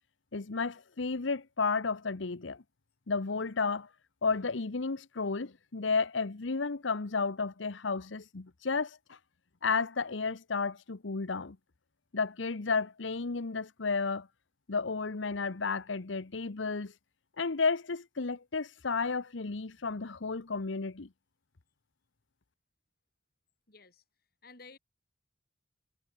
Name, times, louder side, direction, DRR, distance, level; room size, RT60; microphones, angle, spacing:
voice 1, 0.3-2.6 3.1-3.9 4.2-9.0 9.6-11.6 12.1-14.3 14.7-16.9 17.4-21.1, left 4 dB, 85° left, 1.0 m, -32 dB
voice 2, 23.7-24.0 24.4-24.8, left 4 dB, 50° left, 7.4 m, -53 dB
head